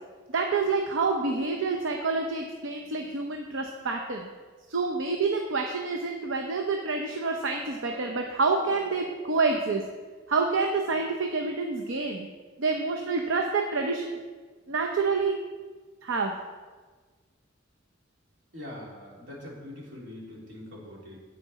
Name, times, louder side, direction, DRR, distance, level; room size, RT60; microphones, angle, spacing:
voice 1, 0.3-4.3 4.7-9.8 10.3-12.3 12.6-14.2 14.7-15.4 16.0-16.3, right 4 dB, 85° right, 2 dB, 0.7 m, -28 dB
voice 2, 18.5-21.2, left 1 dB, 70° right, -4 dB, 2.9 m, -43 dB
9.2 x 8.3 x 4.1 m, 1.4 s
head